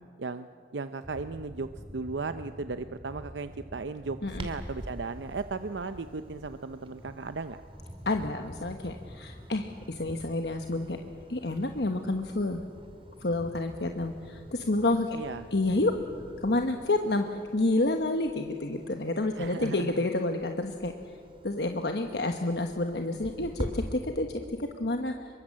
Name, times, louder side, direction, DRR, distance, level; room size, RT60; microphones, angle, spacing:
voice 1, 0.7-7.6 15.1-15.5 19.4-20.1, right 4 dB, 80° right, 10 dB, 0.7 m, -36 dB
sound 1, 1.0-16.7, equal, 10° right, 2.0 m, -48 dB
Clock, 4.3-23.7, equal, 30° right, 2.6 m, -48 dB
voice 2, 8.0-11.0 11.3-12.6 13.2-15.2 15.5-15.9 16.4-20.9 21.4-25.3, left 2 dB, 65° left, 5 dB, 1.2 m, -29 dB
26.0 x 23.5 x 7.5 m, 2.3 s
head